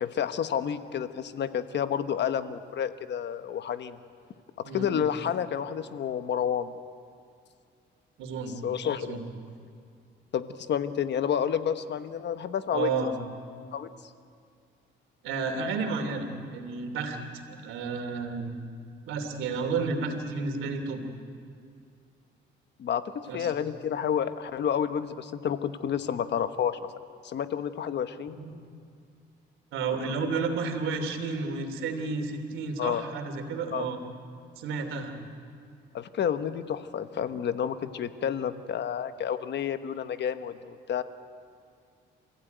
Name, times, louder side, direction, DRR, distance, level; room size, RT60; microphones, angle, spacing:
voice 1, 0.0-4.0 4.6-6.7 8.6-9.2 10.3-13.1 13.7-13.9 22.8-26.8 27.2-28.4 32.8-33.0 33.7-33.9 35.9-41.0, left 8 dB, 60° left, 10 dB, 1.2 m, -30 dB
voice 2, 8.2-8.6 8.9-9.2 12.7-13.1 15.2-18.5 19.1-21.0 23.3-23.5 28.3-28.5 29.7-34.0 34.6-35.1, right 4 dB, 90° right, 6 dB, 2.9 m, -32 dB
28.0 x 15.5 x 9.2 m, 2.3 s
cardioid pair, 90°, 20 cm